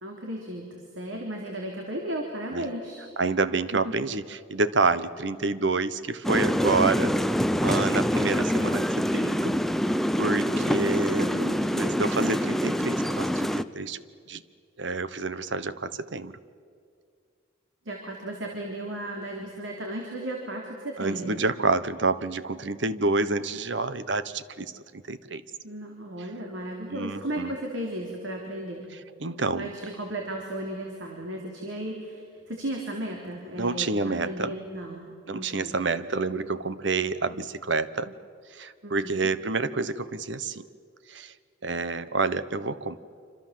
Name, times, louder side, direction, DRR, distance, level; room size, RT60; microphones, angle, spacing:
voice 1, 0.0-3.0 3.8-3.9 10.5-12.3 17.9-21.4 25.6-28.9 29.6-35.8 38.8-39.3, right 1 dB, 85° right, 0 dB, 3.7 m, -35 dB
voice 2, 3.2-7.1 7.6-9.5 9.8-11.4 11.8-14.0 14.3-14.4 14.8-16.3 21.0-25.4 26.9-27.5 29.2-29.7 33.6-34.6 35.3-38.1 38.5-40.6 41.1-41.3 41.6-43.0, right 3 dB, 65° right, 14 dB, 1.0 m, -28 dB
sound 1, 6.2-13.6, equal, ahead, 0.6 m, -25 dB
27.5 x 26.0 x 7.7 m, 2.3 s
head